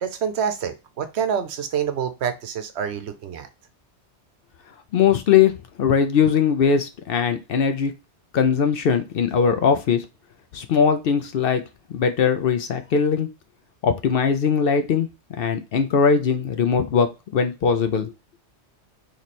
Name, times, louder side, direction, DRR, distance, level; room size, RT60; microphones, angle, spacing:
voice 1, 0.0-3.5, right 7 dB, 75° right, 8 dB, 0.9 m, -27 dB
voice 2, 4.9-5.5 5.8-7.9 8.3-10.0 10.5-11.6 11.9-13.3 13.8-15.1 15.4-17.1 17.3-18.1, left 6 dB, 60° left, 8 dB, 0.7 m, -20 dB
3.1 x 3.1 x 4.1 m, 0.27 s
omnidirectional pair, 1.2 m